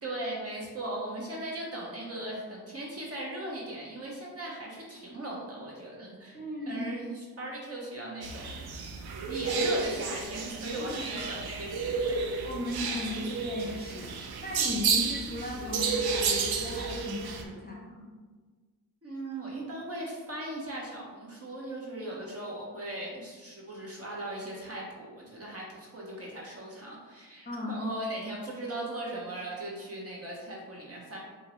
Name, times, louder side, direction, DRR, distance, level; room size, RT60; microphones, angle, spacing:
voice 1, 0.0-6.4 6.6-8.8 9.3-12.2 19.0-31.2, right 1 dB, 35° right, -4 dB, 1.1 m, -38 dB
voice 2, 6.3-7.0 10.8-11.2 12.4-18.0 27.4-27.8, left 2 dB, 25° left, -3 dB, 0.7 m, -37 dB
sound 1, 8.2-17.4, right 4 dB, 70° right, 0.5 m, -31 dB
2.8 x 2.6 x 3.1 m, 1.4 s
supercardioid pair, 45°, 40 cm